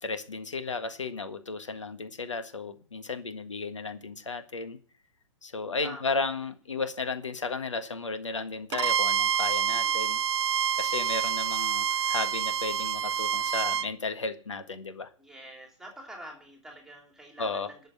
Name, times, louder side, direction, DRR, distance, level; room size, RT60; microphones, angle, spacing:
voice 1, 0.0-4.8 5.4-10.2 10.8-15.1 17.4-17.7, left 4 dB, 70° left, 9 dB, 1.7 m, -34 dB
voice 2, 5.8-6.2 9.7-10.2 15.2-17.8, right 1 dB, 5° right, 1 dB, 3.0 m, -47 dB
Bowed string instrument, 8.7-13.9, right 8 dB, 65° right, 0.4 m, -27 dB
12.0 x 6.8 x 7.7 m, 0.43 s
figure-of-eight pair, 115°, 16 cm